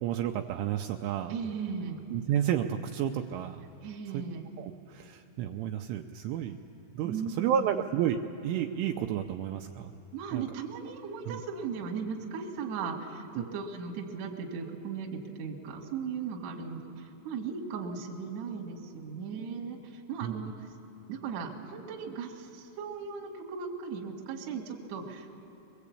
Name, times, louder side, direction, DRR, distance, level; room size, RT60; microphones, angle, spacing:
voice 1, 0.0-1.4 2.1-3.6 4.1-4.2 4.6-6.6 6.9-9.9 10.3-10.4 11.3-11.4 13.4-13.5 20.2-20.4, right 10 dB, 80° right, 4 dB, 2.9 m, -31 dB
voice 2, 1.3-2.0 3.8-4.4 7.0-7.7 10.1-20.5 21.1-25.3, right 6 dB, 55° right, 0 dB, 2.1 m, -37 dB
22.5 x 20.0 x 8.4 m, 2.9 s
omnidirectional pair, 5.9 m